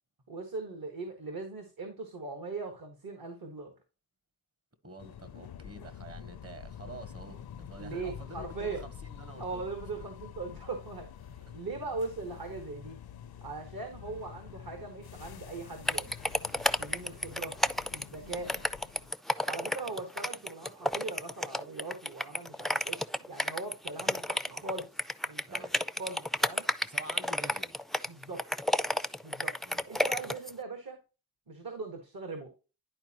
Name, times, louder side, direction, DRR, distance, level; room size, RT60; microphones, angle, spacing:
voice 1, 0.3-3.7 7.8-8.9 9.4-13.0 13.4-16.2 16.7-17.6 17.9-18.5 19.4-25.7 26.0-26.7 28.1-28.5 29.2-31.0 31.5-32.5, right 3 dB, 65° right, 1.6 m, -40 dB
voice 2, 4.8-9.6 11.4-11.6 18.4-18.7 25.5-25.7 26.8-27.7 29.6-29.8, right 2 dB, 40° right, 1.0 m, -48 dB
sound 1, 5.0-19.1, left 9 dB, 75° left, 0.6 m, -47 dB
sound 2, 15.9-30.5, left 1 dB, ahead, 0.3 m, -31 dB
11.0 x 4.4 x 2.9 m
cardioid pair, 55°, 37 cm